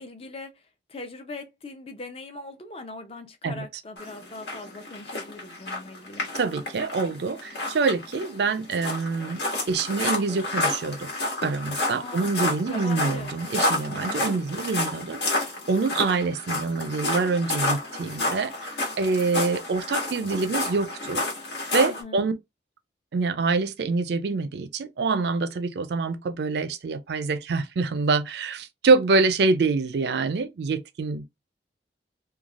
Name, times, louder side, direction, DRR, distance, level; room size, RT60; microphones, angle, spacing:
voice 1, 0.0-6.3 12.0-12.4 12.7-13.3 13.9-14.2 21.8-22.2, left 2 dB, 30° left, 0.5 m, -41 dB
sound 1, 4.0-22.0, left 2 dB, 75° left, 1.4 m, -30 dB
voice 2, 6.3-11.1 11.4-21.3 21.7-22.3 23.1-31.3, right 4 dB, 65° right, 0.4 m, -26 dB
3.1 x 2.3 x 2.4 m
head